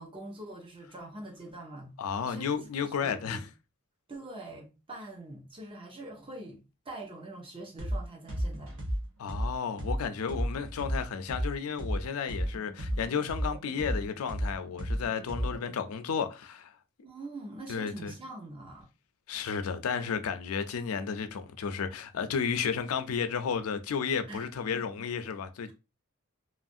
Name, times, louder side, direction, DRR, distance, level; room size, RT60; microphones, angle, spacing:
voice 1, 0.0-1.9 2.3-3.4 4.1-8.8 17.0-18.9 24.3-24.9, right 2 dB, 25° right, 0.7 m, -44 dB
voice 2, 2.0-3.4 9.2-16.7 17.7-18.1 19.3-25.7, left 6 dB, 85° left, 0.4 m, -32 dB
sound 1, 7.8-8.0 8.3-12.0 12.3-15.7, equal, 85° right, 1.0 m, -32 dB
3.0 x 2.4 x 2.6 m
head